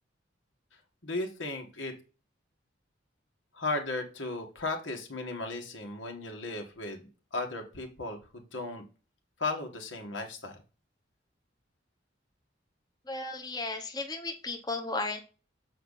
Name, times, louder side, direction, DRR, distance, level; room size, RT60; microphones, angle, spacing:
voice 1, 1.0-1.9 3.5-8.8 9.4-10.6, left 2 dB, 85° left, 2 dB, 2.0 m, -36 dB
voice 2, 13.1-15.2, left 3 dB, 20° left, 3 dB, 0.9 m, -34 dB
7.8 x 4.6 x 4.2 m, 0.33 s
head